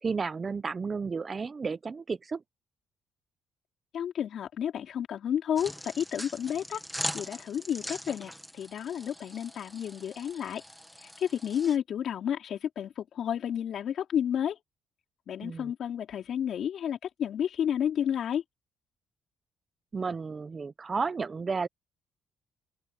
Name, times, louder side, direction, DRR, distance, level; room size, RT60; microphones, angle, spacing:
voice 1, 0.0-2.4 15.4-15.7 19.9-21.7, right 4 dB, 35° right, 0.9 m, -32 dB
voice 2, 3.9-6.8 7.1-10.6 11.0-14.6 15.3-18.4, left 9 dB, 65° left, 4.2 m, -31 dB
sound 1, 5.6-11.8, equal, ahead, 2.1 m, -41 dB
open air
cardioid pair, 90°, 0 cm